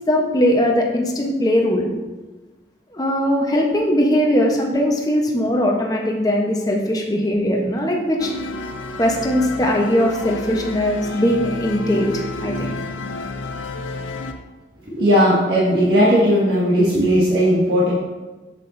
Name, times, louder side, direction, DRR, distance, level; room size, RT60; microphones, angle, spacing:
voice 1, 0.1-1.8 2.9-8.3 9.0-12.7, equal, 20° left, 0 dB, 0.9 m, -20 dB
sound 1, 8.2-14.3, left 3 dB, 85° left, 0.6 m, -30 dB
voice 2, 14.9-17.9, equal, 60° right, -9 dB, 1.6 m, -16 dB
7.6 x 7.2 x 2.6 m, 1.2 s
head